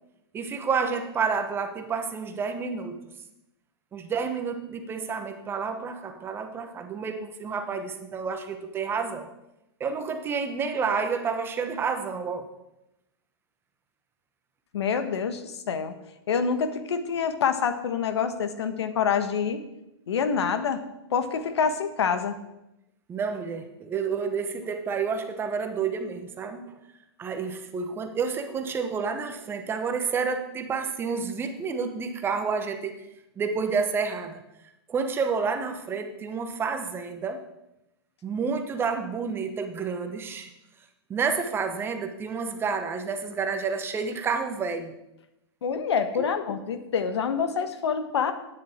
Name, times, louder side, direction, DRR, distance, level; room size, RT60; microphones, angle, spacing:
voice 1, 0.3-3.0 3.9-9.3 9.8-12.5 23.1-26.8 27.2-32.9 33.4-34.4 34.9-37.4 38.2-40.5 41.1-44.9 46.2-46.3, right 5 dB, 15° right, 6 dB, 1.0 m, -29 dB
voice 2, 14.7-15.9 16.3-19.6 20.1-20.8 21.1-22.4 45.6-48.3, left 6 dB, 85° left, 10 dB, 1.4 m, -26 dB
11.0 x 9.7 x 4.4 m, 0.90 s
hypercardioid pair, 145°, 14 cm